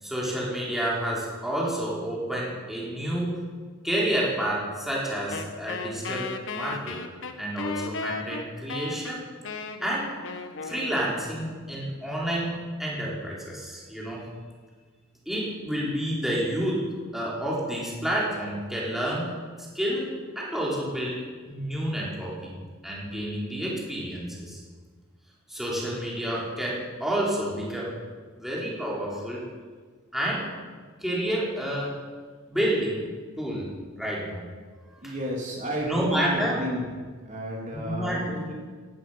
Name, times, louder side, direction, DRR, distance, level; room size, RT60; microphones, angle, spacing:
voice 1, 0.0-3.4 3.8-7.0 7.4-9.2 9.8-10.1 10.6-12.5 12.8-14.3 15.3-19.3 19.7-24.6 25.5-28.0 28.4-29.4 30.1-30.5 31.0-32.0 32.5-33.0 33.4-33.7 34.0-34.4 34.9-35.1 35.8-36.6 37.7-38.2, right 1 dB, ahead, -5 dB, 3.9 m, -29 dB
Wind instrument woodwind instrument, 5.3-11.6, left 4 dB, 65° left, 1.3 m, -36 dB
voice 2, 35.0-36.8 37.3-38.5, equal, 35° right, -2 dB, 3.5 m, -32 dB
17.0 x 14.0 x 5.7 m, 1.5 s
head